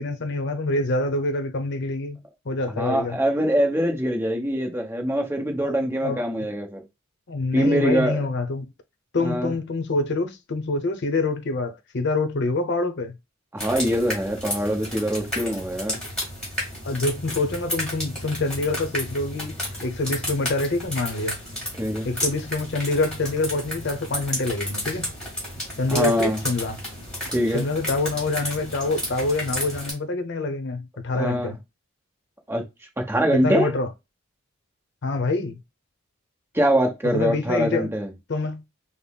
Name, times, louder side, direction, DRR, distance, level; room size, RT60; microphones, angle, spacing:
voice 1, 0.0-3.2 5.6-6.2 7.3-8.7 9.1-13.2 16.8-19.6 19.8-21.4 22.0-25.1 25.8-26.8 27.5-31.6 33.3-33.9 35.0-35.6 37.0-37.9 38.3-38.6, left 2 dB, 55° left, 0.7 m, -26 dB
voice 2, 2.7-6.8 7.5-8.3 9.2-9.5 13.5-16.0 21.8-22.1 25.9-26.4 27.3-27.6 31.1-31.5 32.5-32.6 33.0-33.7 36.5-38.1, equal, 10° right, 0.8 m, -23 dB
sound 1, 13.6-29.9, equal, 5° left, 1.8 m, -32 dB
5.4 x 2.0 x 2.2 m
head